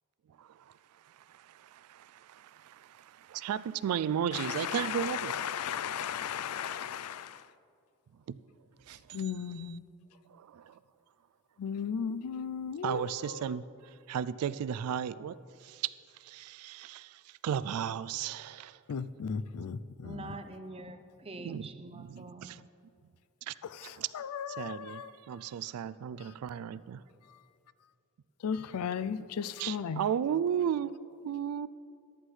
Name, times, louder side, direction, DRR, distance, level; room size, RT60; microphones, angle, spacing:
voice 1, 0.4-0.7 1.0-5.3 8.3-8.4 8.9-9.8 10.3-10.8 12.8-15.9 16.2-18.8 21.4-22.6 23.4-23.5 23.8-24.1 24.6-27.0 29.2-29.3 29.6-31.7, right 8 dB, 80° right, 0.3 m, -35 dB
voice 2, 4.3-7.4 9.1-9.8 11.6-13.5 18.9-20.3 23.8-25.1 28.4-30.0, left 7 dB, 80° left, 0.4 m, -36 dB
voice 3, 20.0-22.6, right 2 dB, 25° right, 0.6 m, -45 dB
14.5 x 11.0 x 3.3 m
head